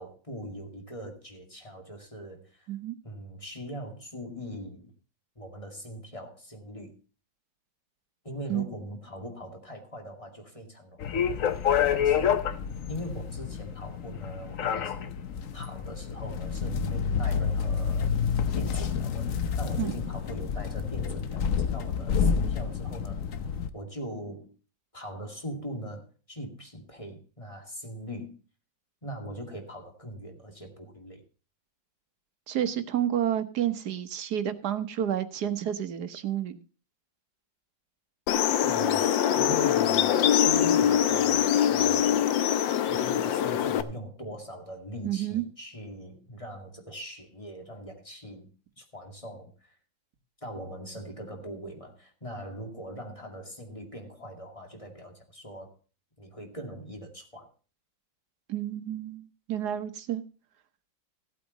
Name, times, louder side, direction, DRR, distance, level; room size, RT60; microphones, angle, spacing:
voice 1, 0.0-2.7 3.0-4.9 5.4-7.0 8.2-12.6 12.9-15.1 15.5-18.1 18.5-23.3 23.7-24.5 24.9-28.4 29.0-31.2 38.6-42.3 42.9-48.5 48.8-49.8 50.4-55.7 56.2-57.5, equal, 15° left, 3 dB, 2.3 m, -41 dB
sound 1, 11.0-23.7, left 7 dB, 55° left, 1.0 m, -28 dB
voice 2, 32.5-36.6 45.0-45.4 58.5-60.2, right 10 dB, 60° right, 9 dB, 1.5 m, -30 dB
sound 2, 38.3-43.8, left 10 dB, 80° left, 1.5 m, -23 dB
15.5 x 8.6 x 4.0 m, 0.36 s
omnidirectional pair, 2.0 m